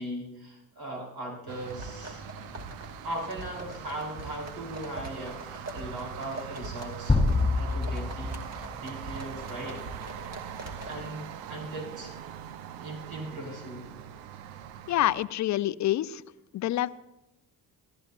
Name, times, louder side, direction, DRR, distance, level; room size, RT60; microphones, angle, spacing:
voice 1, 0.0-2.2 3.0-7.2 7.5-10.1 10.8-12.2 12.8-13.9, right 1 dB, 45° right, -2 dB, 4.8 m, -39 dB
sound 1, 1.5-15.2, right 8 dB, 65° right, 1.0 m, -42 dB
sound 2, 1.6-11.0, right 2 dB, 30° right, 2.3 m, -44 dB
sound 3, 7.1-9.1, left 3 dB, 10° left, 2.5 m, -26 dB
voice 2, 14.9-16.2 16.5-16.9, left 14 dB, 35° left, 18 dB, 0.5 m, -27 dB
27.5 x 14.0 x 2.5 m, 0.89 s
figure-of-eight pair, 45°, 49 cm